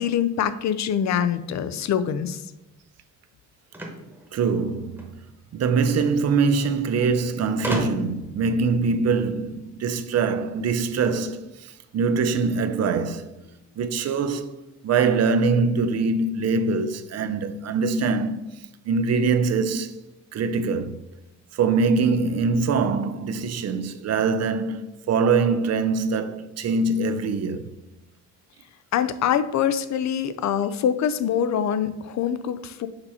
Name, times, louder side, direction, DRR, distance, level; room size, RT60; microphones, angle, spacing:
voice 1, 0.0-2.4 28.9-32.9, left 8 dB, 60° left, 0.5 m, -24 dB
sound 1, 3.7-5.1 6.2-6.3 6.6-6.7 7.6-8.3, right 1 dB, 5° right, 1.1 m, -32 dB
voice 2, 4.3-5.2 5.5-13.3 13.8-18.4 18.9-20.0 20.3-21.0 21.5-27.6, right 4 dB, 55° right, 0.5 m, -23 dB
6.7 x 2.9 x 5.4 m
wide cardioid pair, 155°, 31 cm